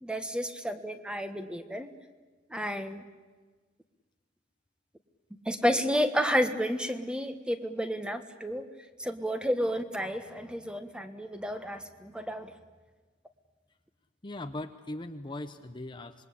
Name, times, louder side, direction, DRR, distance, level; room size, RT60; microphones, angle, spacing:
voice 1, 0.0-1.9 2.5-3.0 5.4-8.7 9.0-12.5, equal, 5° right, 8 dB, 1.4 m, -31 dB
voice 2, 14.2-16.3, left 1 dB, 25° left, 7 dB, 0.9 m, -39 dB
26.5 x 22.0 x 8.5 m, 1.3 s
head